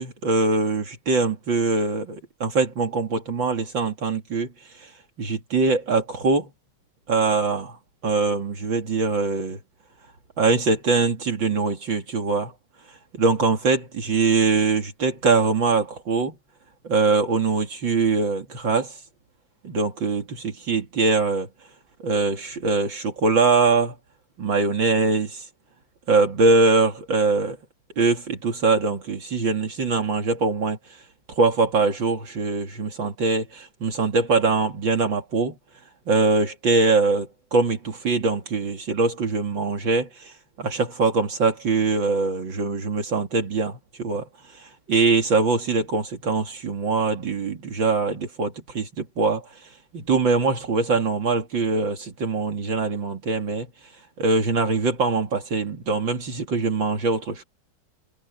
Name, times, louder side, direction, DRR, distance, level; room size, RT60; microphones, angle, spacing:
voice 1, 0.0-4.5 4.8-4.9 5.2-6.5 7.1-7.8 8.0-9.6 10.4-12.5 13.1-16.3 16.8-18.9 19.6-21.5 22.0-23.9 24.4-25.5 26.1-27.6 28.0-30.8 31.4-35.6 36.1-44.3 44.6-49.5 49.9-53.7 54.2-57.4, right 3 dB, 70° right, 3.1 m, -22 dB
omnidirectional pair, 2.2 m